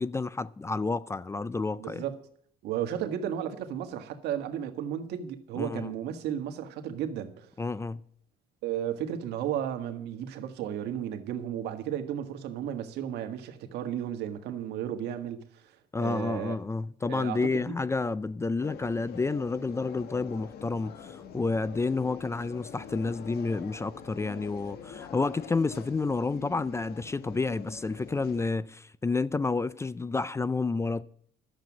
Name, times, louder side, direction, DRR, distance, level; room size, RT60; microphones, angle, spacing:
voice 1, 0.0-2.0 5.6-5.9 7.6-8.0 15.9-31.0, left 3 dB, 15° left, 0.4 m, -30 dB
voice 2, 1.8-2.2 2.6-7.5 8.6-16.5 17.1-17.8, right 10 dB, 80° right, 1.6 m, -34 dB
sound 1, 18.6-28.4, left 7 dB, 70° left, 1.4 m, -45 dB
11.5 x 7.5 x 7.3 m
cardioid pair, 110°, 17 cm